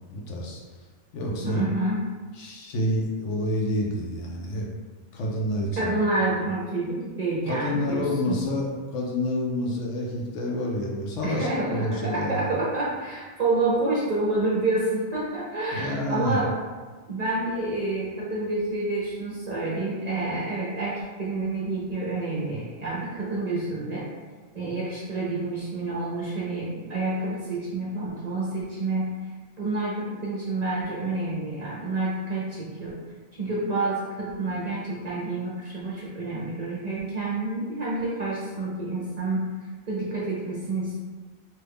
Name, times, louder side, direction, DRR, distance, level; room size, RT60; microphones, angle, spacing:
voice 1, 0.1-0.6 1.1-1.6 2.3-4.7 5.1-5.9 7.5-12.5 15.7-16.4, left 1 dB, 85° left, -2 dB, 1.0 m, -28 dB
voice 2, 1.4-2.0 5.8-8.4 11.2-16.5 17.1-24.1 24.5-29.1 29.6-33.0 33.3-39.5 39.9-41.0, right 2 dB, 50° right, -6 dB, 0.5 m, -28 dB
3.0 x 2.2 x 3.4 m, 1.4 s
omnidirectional pair, 1.2 m